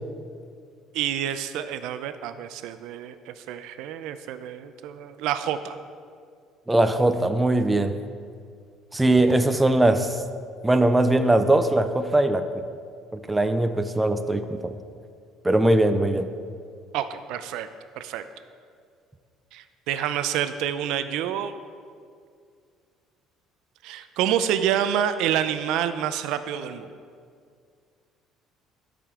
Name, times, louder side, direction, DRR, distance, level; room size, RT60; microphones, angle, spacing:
voice 1, 0.9-5.8 16.9-17.7 18.0-18.2 19.5-21.5 23.8-26.9, right 10 dB, 75° right, 11 dB, 0.4 m, -28 dB
voice 2, 6.7-7.9 8.9-10.1 10.6-12.6 13.1-14.7 15.4-16.3, right 1 dB, 10° right, 8 dB, 0.3 m, -21 dB
13.0 x 5.0 x 3.7 m, 2.2 s
cardioid pair, 160°, 0 cm